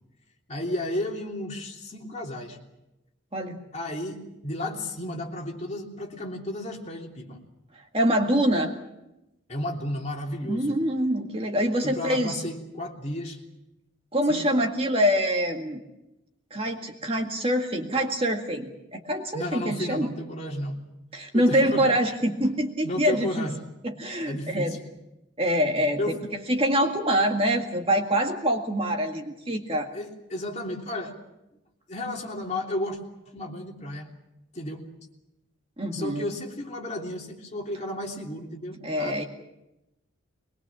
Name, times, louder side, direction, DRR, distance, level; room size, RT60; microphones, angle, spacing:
voice 1, 0.5-2.6 3.7-7.4 9.5-10.7 11.8-13.4 14.3-14.5 19.3-20.8 21.3-21.8 22.8-23.6 24.2-24.8 26.0-26.2 29.9-31.2 31.9-33.0 33.3-34.1 34.5-34.8 35.9-39.3, left 1 dB, 35° left, 0 dB, 3.2 m, -33 dB
voice 2, 7.9-8.7 10.4-12.4 14.1-15.8 16.5-20.1 21.1-23.5 23.8-24.8 25.4-26.2 26.5-29.9 35.8-36.2 38.8-39.3, equal, 30° right, 3 dB, 1.9 m, -25 dB
22.5 x 21.5 x 7.4 m, 0.91 s
head